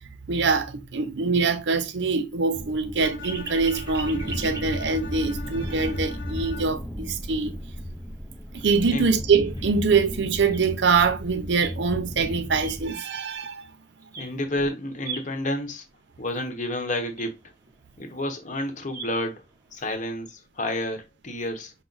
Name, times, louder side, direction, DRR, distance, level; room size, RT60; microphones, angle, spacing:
voice 1, 0.3-7.5 8.5-13.6, right 4 dB, 70° right, 0.6 m, -24 dB
sound 1, 2.5-12.9, equal, 5° left, 0.6 m, -35 dB
Bowed string instrument, 3.0-7.0, left 2 dB, 70° left, 1.1 m, -41 dB
sound 2, 3.2-5.4 5.8-5.9 6.4-6.5 7.8-7.9 8.4-8.5 8.8-8.9 9.2-12.1 12.5-13.8 14.0-14.5 14.8-15.7 16.3-16.4 16.6-16.7 16.9-19.9, right 4 dB, 15° right, 0.9 m, -40 dB
voice 2, 14.2-15.8 16.2-17.3 18.0-19.4 19.7-21.7, left 1 dB, 40° left, 0.9 m, -30 dB
5.8 x 2.1 x 3.9 m
head